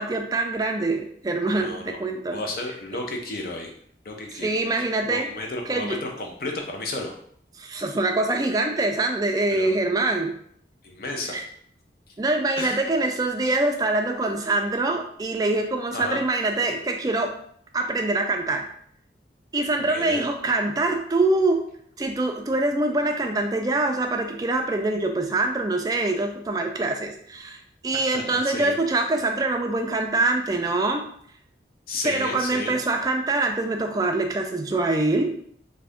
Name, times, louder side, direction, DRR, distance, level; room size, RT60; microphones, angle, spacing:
voice 1, 0.0-2.4 4.3-5.3 5.7-6.0 7.6-10.3 11.3-11.4 12.2-17.3 17.7-18.7 19.5-21.6 22.0-31.1 32.0-35.3, right 2 dB, 20° right, 3 dB, 0.3 m, -24 dB
voice 2, 1.6-2.0 2.3-3.7 4.0-4.6 5.1-7.1 9.6-9.7 10.8-11.4 12.6-12.8 15.9-16.2 19.9-20.2 28.1-28.7 31.9-32.7, left 2 dB, 55° left, 2 dB, 0.5 m, -32 dB
2.6 x 2.5 x 3.4 m, 0.64 s
head